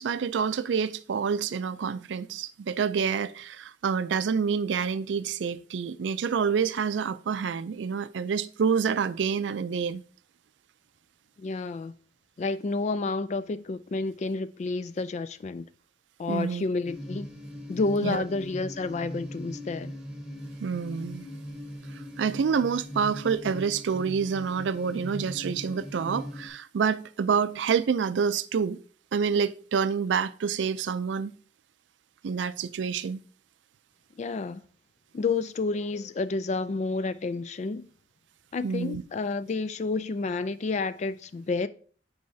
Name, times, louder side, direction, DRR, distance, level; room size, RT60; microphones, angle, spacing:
voice 1, 0.0-10.0 16.3-16.6 18.0-18.2 20.6-21.3 22.2-28.8 29.1-31.3 32.2-33.2 38.6-39.0, right 6 dB, 80° right, 0.4 m, -27 dB
voice 2, 11.4-11.9 12.4-15.7 16.2-17.3 17.7-19.9 34.2-34.6 35.1-37.9 38.5-41.7, left 3 dB, 40° left, 0.3 m, -30 dB
sound 1, 16.8-26.5, equal, 5° right, 1.5 m, -40 dB
9.5 x 4.7 x 2.7 m
head